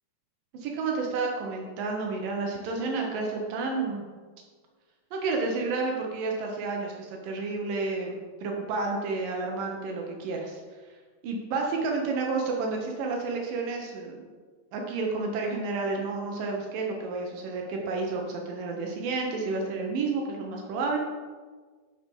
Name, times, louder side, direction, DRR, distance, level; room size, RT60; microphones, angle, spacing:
voice 1, 0.5-4.1 5.1-10.6 11.2-14.3 14.7-21.0, right 3 dB, 80° right, 0 dB, 2.8 m, -30 dB
11.0 x 4.5 x 5.4 m, 1.5 s
omnidirectional pair, 3.9 m